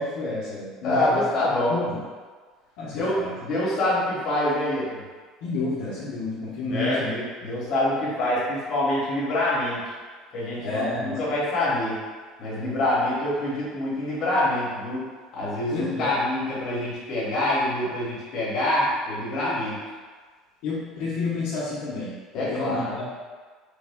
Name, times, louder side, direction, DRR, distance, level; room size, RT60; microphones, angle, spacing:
voice 1, 0.0-1.3 1.7-2.0 2.8-3.3 5.4-7.1 10.6-11.2 15.7-16.1 20.6-23.1, left 2 dB, 70° left, -8 dB, 0.8 m, -30 dB
voice 2, 0.8-1.8 2.9-5.0 6.7-9.8 10.3-12.0 12.4-15.0 15.3-19.8 22.3-22.9, left 1 dB, 40° left, -7 dB, 1.2 m, -26 dB
3.4 x 2.2 x 3.5 m, 1.4 s
cardioid pair, 160°, 0 cm